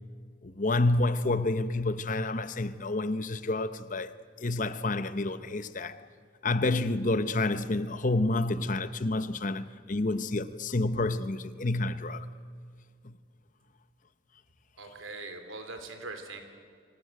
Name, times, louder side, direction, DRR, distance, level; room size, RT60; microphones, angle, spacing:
voice 1, 0.4-6.0 6.4-12.3 13.0-13.1, left 2 dB, 40° left, 0.8 m, -29 dB
voice 2, 14.8-16.4, right 3 dB, 90° right, 3.2 m, -41 dB
25.0 x 18.0 x 9.0 m
head